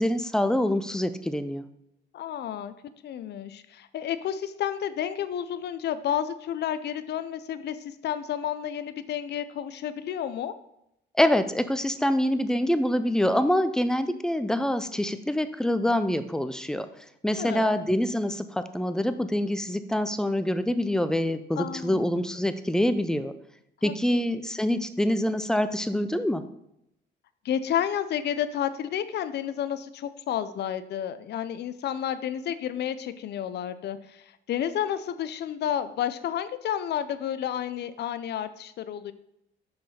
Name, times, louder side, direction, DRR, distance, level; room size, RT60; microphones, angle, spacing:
voice 1, 0.0-1.6 11.2-16.9 17.2-23.3 23.8-26.4, left 1 dB, 5° left, 11 dB, 0.4 m, -25 dB
voice 2, 2.1-2.7 3.0-10.5 17.4-17.7 21.6-22.0 23.8-24.3 27.4-39.1, left 10 dB, 60° left, 12 dB, 0.5 m, -31 dB
5.6 x 5.2 x 4.2 m, 0.80 s
cardioid pair, 90°, 20 cm